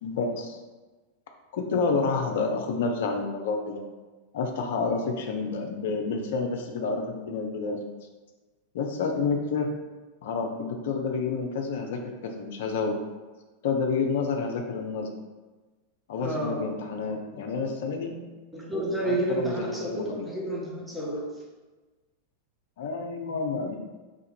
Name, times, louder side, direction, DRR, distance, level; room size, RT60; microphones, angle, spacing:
voice 1, 0.0-0.6 1.5-3.8 4.3-7.8 8.7-9.7 10.2-13.0 13.6-15.1 16.1-18.2 19.0-20.3 22.8-23.8, left 4 dB, 55° left, 3 dB, 0.5 m, -29 dB
voice 2, 16.2-16.8 18.5-21.4, right 1 dB, 5° right, -4 dB, 0.7 m, -30 dB
2.9 x 2.5 x 4.2 m, 1.2 s
figure-of-eight pair, 90°, 0 cm